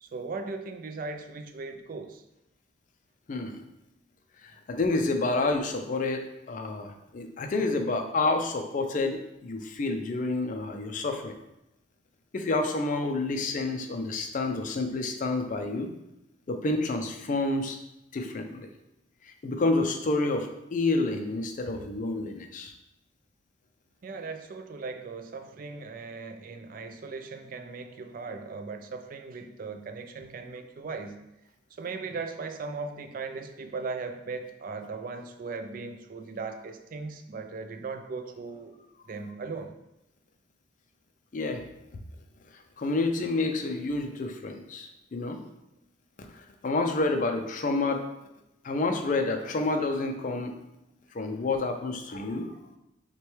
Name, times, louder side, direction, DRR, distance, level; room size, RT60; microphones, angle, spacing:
voice 1, 0.0-2.2 24.0-31.1 31.7-38.8 39.1-39.7, right 4 dB, 45° right, 7 dB, 0.3 m, -38 dB
voice 2, 3.3-3.6 4.4-11.3 12.3-15.9 16.5-17.8 18.1-18.7 19.2-22.7 41.3-41.7 42.8-45.4 46.3-48.0 48.6-50.5 51.1-52.5, left 2 dB, 40° left, 5 dB, 0.4 m, -29 dB
5.9 x 2.2 x 3.1 m, 0.89 s
head